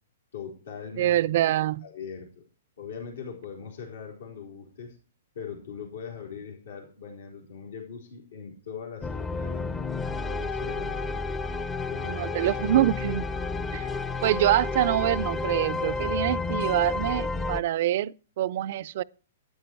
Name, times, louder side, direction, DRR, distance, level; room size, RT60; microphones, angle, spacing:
voice 1, 0.3-1.2 1.8-2.4 2.8-5.0 5.3-9.7 10.2-11.3 11.9-12.5, left 6 dB, 80° left, 4.0 m, -41 dB
voice 2, 1.0-1.9 12.0-13.3 13.7-13.9 14.2-19.0, right 13 dB, 55° right, 0.5 m, -25 dB
sound 1, 9.0-17.6, left 3 dB, 15° left, 0.7 m, -31 dB
12.5 x 10.0 x 4.5 m
hypercardioid pair, 130°, 0 cm